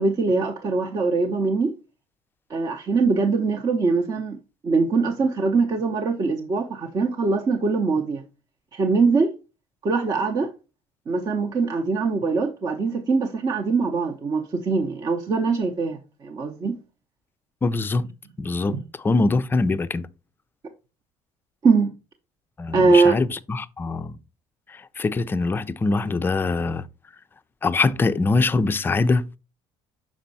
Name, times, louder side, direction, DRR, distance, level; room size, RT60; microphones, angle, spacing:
voice 1, 0.0-1.7 2.5-4.4 4.6-8.2 8.7-9.3 9.8-10.5 11.1-16.8 18.7-18.8 21.6-21.9 22.7-23.2, right 4 dB, 30° right, 0.7 m, -22 dB
voice 2, 17.6-18.1 18.4-20.1 22.6-24.2 24.7-26.9 27.6-29.4, left 3 dB, 15° left, 0.4 m, -23 dB
6.1 x 4.2 x 4.0 m
cardioid pair, 125°, 13 cm